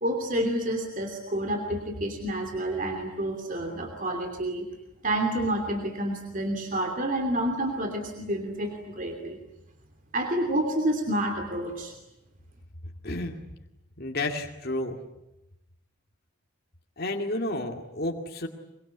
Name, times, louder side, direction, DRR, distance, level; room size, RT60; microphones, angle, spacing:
voice 1, 0.0-4.6 5.0-9.4 10.1-11.9, right 1 dB, 35° right, 4 dB, 3.0 m, -29 dB
voice 2, 13.0-13.4 14.0-15.0 17.0-18.5, left 2 dB, 45° left, 2 dB, 2.4 m, -31 dB
24.0 x 23.5 x 9.7 m, 0.90 s
head